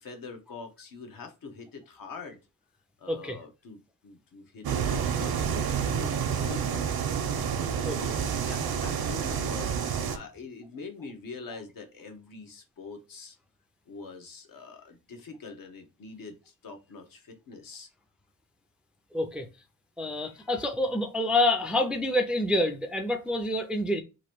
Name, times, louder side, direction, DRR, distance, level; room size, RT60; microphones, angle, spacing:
voice 1, 0.0-2.4 3.0-7.2 7.8-13.4 13.9-17.9 20.2-20.6, left 4 dB, 70° left, 0.9 m, -44 dB
sound 1, 4.6-10.2, right 7 dB, 85° right, 0.7 m, -29 dB
voice 2, 19.1-19.5 20.0-24.0, left 1 dB, 5° right, 0.3 m, -27 dB
3.0 x 2.5 x 4.4 m
wide cardioid pair, 170°, 35 cm